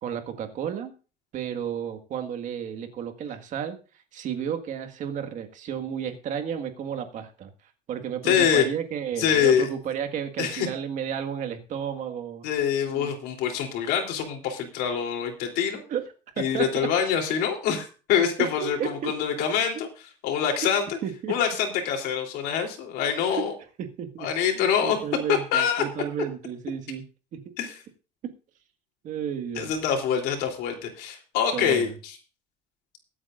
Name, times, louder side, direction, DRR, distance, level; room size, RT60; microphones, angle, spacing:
voice 1, 0.0-0.9 1.3-3.8 4.1-7.5 7.9-12.5 12.9-13.1 15.9-16.1 16.4-16.9 18.4-19.1 20.5-20.7 21.0-21.3 23.3-23.4 23.8-27.0 27.3-27.4 28.2-28.3 29.0-29.7 31.5-31.9, right 8 dB, 45° right, 7 dB, 1.8 m, -32 dB
voice 2, 8.2-8.7 9.2-9.7 10.4-10.7 12.4-15.8 16.4-19.9 20.2-20.9 21.3-23.5 24.2-25.0 25.3-25.8 27.6-27.7 29.6-32.1, left 8 dB, 65° left, 3 dB, 3.3 m, -25 dB
23.0 x 8.6 x 2.6 m, 0.35 s
cardioid pair, 155°, 18 cm